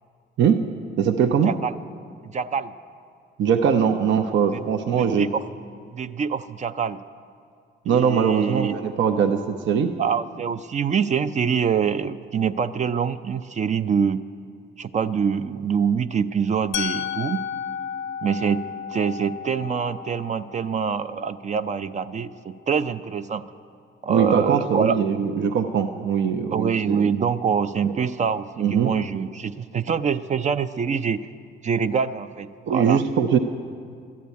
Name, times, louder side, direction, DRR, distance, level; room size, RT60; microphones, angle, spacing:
voice 1, 1.0-1.5 3.4-5.3 7.9-9.4 9.7-9.9 24.1-27.0 27.8-27.9 28.6-28.9 32.6-33.4, right 7 dB, 70° right, 6 dB, 0.7 m, -21 dB
voice 2, 2.2-2.7 4.5-4.6 5.0-5.4 5.9-7.0 7.9-8.8 10.0-14.2 14.8-17.4 18.2-18.6 18.9-23.4 24.0-25.0 26.5-31.2 31.6-33.0, right 6 dB, 35° right, 11 dB, 0.4 m, -25 dB
Musical instrument, 16.7-22.6, left 8 dB, 75° left, 0.6 m, -34 dB
12.0 x 8.6 x 9.4 m, 2.3 s
cardioid pair, 90°, 20 cm